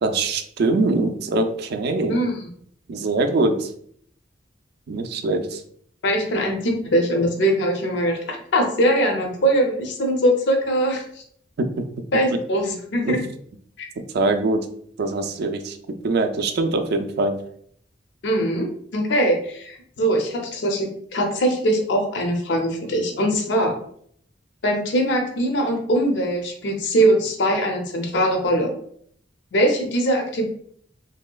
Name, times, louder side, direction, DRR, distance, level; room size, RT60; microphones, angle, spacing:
voice 1, 0.0-2.2 2.9-3.7 4.9-5.6 11.6-11.9 12.3-12.4 13.0-13.3 14.0-14.7 15.0-17.4, right 2 dB, 60° right, 7 dB, 0.4 m, -23 dB
voice 2, 2.1-2.5 6.0-11.2 12.1-13.2 13.8-13.9 18.2-23.8 24.6-28.7 29.5-30.5, right 1 dB, 70° left, 2 dB, 0.5 m, -21 dB
3.1 x 2.7 x 2.2 m, 0.64 s
head